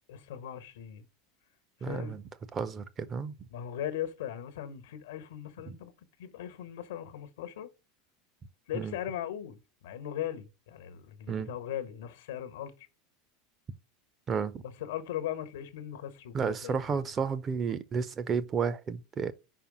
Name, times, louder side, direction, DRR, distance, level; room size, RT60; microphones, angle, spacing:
voice 1, 0.1-1.1 1.8-2.2 3.5-5.9 6.2-7.7 8.7-12.7 14.6-17.1, left 10 dB, 65° left, 1.2 m, -39 dB
voice 2, 1.8-2.2 2.5-3.3 5.7-5.8 8.7-8.9 11.3-11.5 14.3-14.6 16.3-19.3, right 6 dB, 30° right, 0.7 m, -32 dB
5.2 x 4.4 x 6.2 m
figure-of-eight pair, 80°, 0 cm